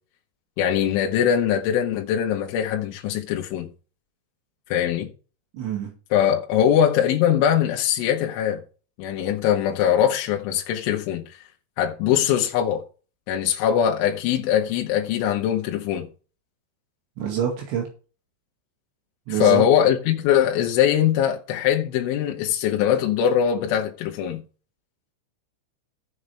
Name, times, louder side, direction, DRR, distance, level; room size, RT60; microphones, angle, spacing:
voice 1, 0.6-3.7 4.7-5.1 6.1-8.6 9.0-11.2 11.8-12.8 13.3-16.1 19.3-24.4, left 9 dB, 85° left, 3.6 m, -21 dB
voice 2, 5.5-5.9 17.2-17.9 19.3-19.6, right 9 dB, 75° right, 4.4 m, -26 dB
14.0 x 8.0 x 3.3 m
omnidirectional pair, 5.4 m